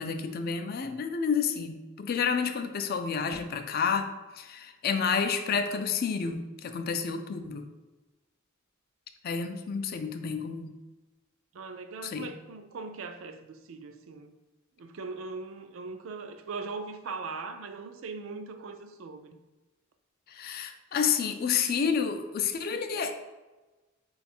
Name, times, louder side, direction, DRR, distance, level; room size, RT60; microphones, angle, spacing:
voice 1, 0.0-4.1 4.4-7.6 9.2-10.7 12.0-12.3 20.3-23.1, left 6 dB, 50° left, 0.4 m, -30 dB
voice 2, 11.5-14.3 14.8-19.4, right 4 dB, 85° right, 0.4 m, -40 dB
3.8 x 2.4 x 4.2 m
head